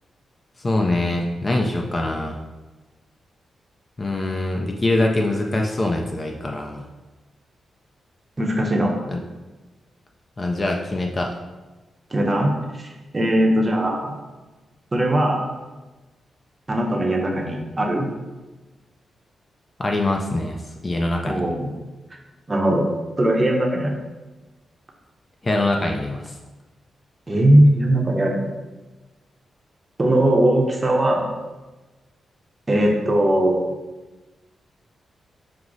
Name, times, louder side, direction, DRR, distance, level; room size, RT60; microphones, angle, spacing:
voice 1, 0.6-2.4 4.0-6.9 9.1-9.2 10.4-11.3 19.8-20.6 20.8-21.4 25.4-26.4, left 2 dB, 25° left, 1 dB, 0.4 m, -23 dB
voice 2, 8.4-9.0 12.1-12.5 12.8-12.9 13.1-14.1 14.9-15.4 16.7-18.1 21.2-21.7 22.5-22.9 23.2-24.0 27.3-28.5 30.0-31.3 32.7-33.7, right 1 dB, 25° right, 0 dB, 0.6 m, -19 dB
6.0 x 2.0 x 3.8 m, 1.2 s
wide cardioid pair, 130°, 0 cm